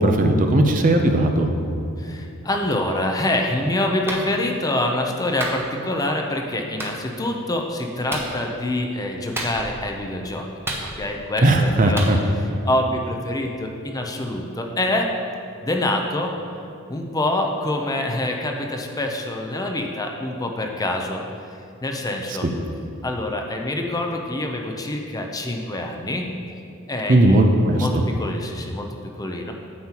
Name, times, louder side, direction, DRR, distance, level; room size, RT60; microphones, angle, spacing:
voice 1, 0.0-1.5 11.4-12.2 22.4-22.5 27.1-28.0, right 1 dB, 40° right, 4 dB, 0.6 m, -17 dB
voice 2, 2.5-10.5 11.0-12.0 12.7-15.1 15.6-16.3 16.9-21.2 21.8-22.5 23.0-26.2 26.9-27.4 27.8-27.9 28.2-28.9 29.2-29.5, left 1 dB, 15° left, 2 dB, 0.5 m, -25 dB
Clapping, 4.1-4.3 5.4-5.6 6.8-7.0 8.1-8.3 9.4-9.8 10.7-11.2 12.0-12.1, right 1 dB, 10° right, 0.8 m, -29 dB
9.4 x 7.2 x 2.9 m, 2.6 s
head